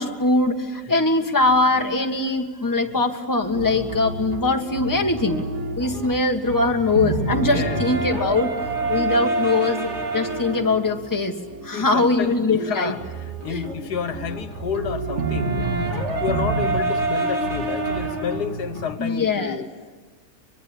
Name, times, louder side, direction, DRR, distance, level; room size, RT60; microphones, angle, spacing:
voice 1, 0.0-5.4 5.8-8.5 8.9-11.3 11.6-12.9 13.5-13.6 19.0-19.6, left 3 dB, 10° left, 3 dB, 1.7 m, -22 dB
sound 1, 3.5-18.9, right 3 dB, 45° right, 2.7 m, -27 dB
voice 2, 7.5-7.8 11.7-15.7 16.2-19.7, left 7 dB, 80° left, 11 dB, 1.8 m, -30 dB
25.0 x 22.5 x 9.9 m, 1.3 s
omnidirectional pair, 1.7 m